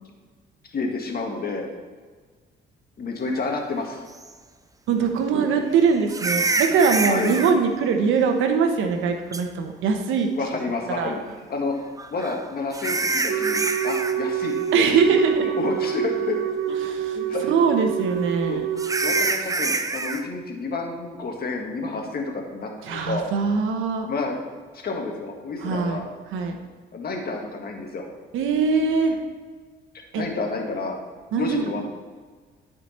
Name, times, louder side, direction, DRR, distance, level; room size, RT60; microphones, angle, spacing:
voice 1, 0.7-1.7 3.0-4.0 5.0-5.2 7.1-7.4 10.3-11.2 11.5-11.7 12.1-15.0 15.4-16.4 17.1-17.6 18.4-18.6 19.0-23.3 24.1-24.4 24.7-26.1 26.9-28.1 29.9-31.0 31.4-31.9, left 3 dB, 50° left, 1 dB, 1.9 m, -30 dB
sound 1, 4.2-4.3 6.1-7.5 9.3-9.4 12.0-14.2 14.4-14.8 15.2-15.3 15.9-16.0 18.8-20.2, right 3 dB, 15° right, 0.6 m, -26 dB
voice 2, 4.9-10.3 11.0-11.1 14.7-15.5 16.7-18.7 22.8-24.1 25.6-26.0 26.3-26.6 28.3-29.2 30.1-30.2 31.3-31.6, right 5 dB, 85° right, 5 dB, 1.1 m, -22 dB
Wind instrument woodwind instrument, 13.3-19.3, right 9 dB, 65° right, 0.7 m, -27 dB
12.0 x 5.1 x 4.4 m, 1.5 s
cardioid pair, 90°, 20 cm